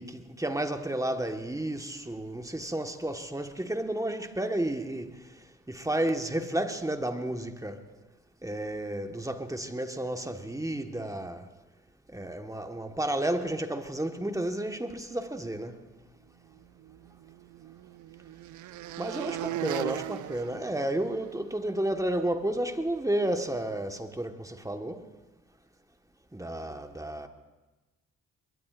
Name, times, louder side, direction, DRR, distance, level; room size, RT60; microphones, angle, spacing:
voice 1, 0.0-5.1 5.7-7.8 8.4-11.4 12.1-15.8 19.0-25.0 26.3-27.3, right 1 dB, 10° right, 1.5 m, -32 dB
sound 1, 16.8-21.4, right 14 dB, 65° right, 0.5 m, -38 dB
22.0 x 21.0 x 2.6 m
hypercardioid pair, 45°, 33 cm